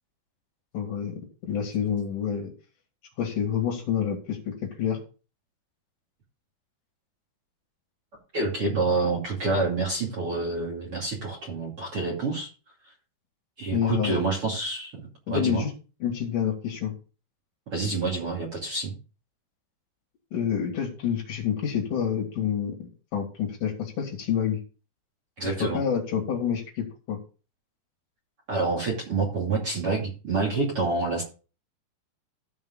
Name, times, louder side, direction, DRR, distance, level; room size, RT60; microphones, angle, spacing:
voice 1, 0.7-2.5 3.2-5.0 13.7-14.2 15.3-15.7 16.0-16.9 20.3-22.7 23.1-24.6 25.6-27.2, left 8 dB, 50° left, 0 dB, 3.1 m, -28 dB
voice 2, 8.3-12.5 13.6-15.6 17.7-19.0 25.4-25.8 28.5-31.2, right 3 dB, 35° right, -2 dB, 2.8 m, -27 dB
15.5 x 5.4 x 3.9 m, 0.34 s
omnidirectional pair, 5.6 m